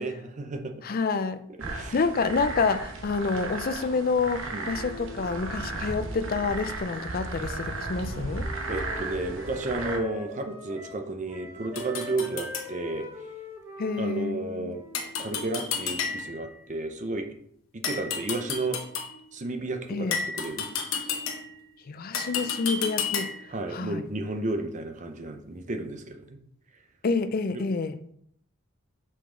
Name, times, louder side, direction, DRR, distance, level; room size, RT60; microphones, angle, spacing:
voice 1, 0.0-0.7 1.6-2.0 4.5-4.7 8.7-13.1 14.0-14.8 15.2-17.3 17.7-18.8 19.3-20.7 23.5-26.4 27.5-27.6, right 2 dB, 35° right, 0.6 m, -32 dB
voice 2, 0.8-1.5 1.7-8.5 13.8-14.7 19.9-20.2 21.9-23.4 23.7-24.0 27.0-28.0, left 4 dB, 45° left, 0.4 m, -28 dB
sound 1, 1.6-10.0, right 2 dB, 65° right, 1.0 m, -35 dB
Wind instrument woodwind instrument, 7.5-15.1, left 1 dB, 10° right, 1.1 m, -43 dB
sound 2, 11.7-12.7 14.9-16.5 17.8-19.2 20.1-21.6 22.1-23.5, left 6 dB, 70° left, 0.9 m, -32 dB
5.8 x 5.0 x 3.8 m
head